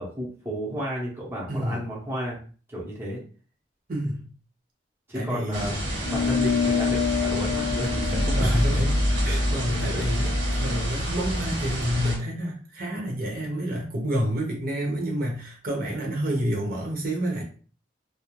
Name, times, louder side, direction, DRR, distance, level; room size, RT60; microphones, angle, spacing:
voice 1, 0.0-2.4 2.7-3.2 5.1-8.8 9.7-10.0, equal, 15° right, -5 dB, 0.8 m, -32 dB
voice 2, 1.5-1.8 3.9-4.3 5.1-5.7 8.4-9.0 9.2-17.4, equal, 55° right, -1 dB, 0.8 m, -28 dB
sound 1, 5.5-12.2, equal, 85° right, 1.0 m, -27 dB
sound 2, 6.0-10.8, left 7 dB, 90° left, 0.3 m, -28 dB
2.4 x 2.0 x 2.9 m, 0.39 s
head